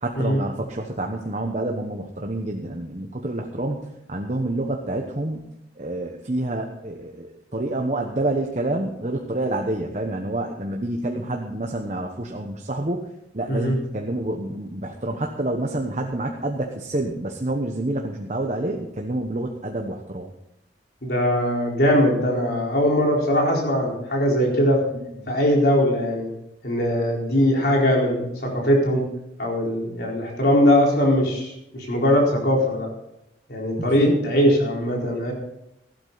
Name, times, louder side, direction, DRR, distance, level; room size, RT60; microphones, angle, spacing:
voice 1, 0.0-3.8 4.1-5.4 5.8-20.3 24.9-25.3 33.8-34.2, right 1 dB, 40° right, 2 dB, 1.1 m, -28 dB
voice 2, 21.0-24.8 25.3-26.3 26.6-29.0 29.4-32.9 33.5-35.3, equal, 60° left, -1 dB, 4.4 m, -20 dB
15.5 x 12.0 x 4.1 m, 0.82 s
head